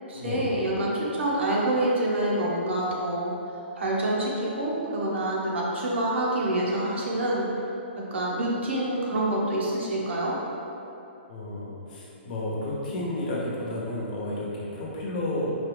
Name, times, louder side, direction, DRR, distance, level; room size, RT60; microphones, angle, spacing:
voice 1, 0.1-3.3 3.8-7.4 7.9-10.3, right 1 dB, 85° right, -4 dB, 1.0 m, -27 dB
voice 2, 11.3-15.6, left 1 dB, 45° left, -4 dB, 0.9 m, -31 dB
4.5 x 2.4 x 3.2 m, 2.8 s
hypercardioid pair, 155°, 6 cm